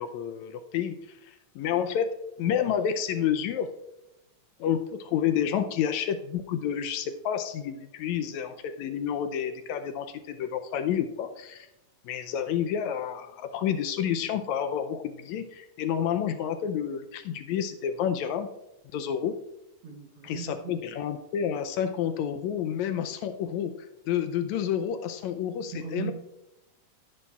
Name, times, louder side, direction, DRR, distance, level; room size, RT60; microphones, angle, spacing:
voice 1, 0.0-3.7 4.6-11.7 12.1-18.5 18.9-19.4 20.2-23.7 24.1-26.1, left 9 dB, 80° left, 8 dB, 1.8 m, -29 dB
voice 2, 19.8-20.8 25.7-26.1, right 8 dB, 65° right, 1 dB, 1.4 m, -38 dB
13.5 x 9.8 x 2.4 m, 0.89 s
omnidirectional pair, 3.5 m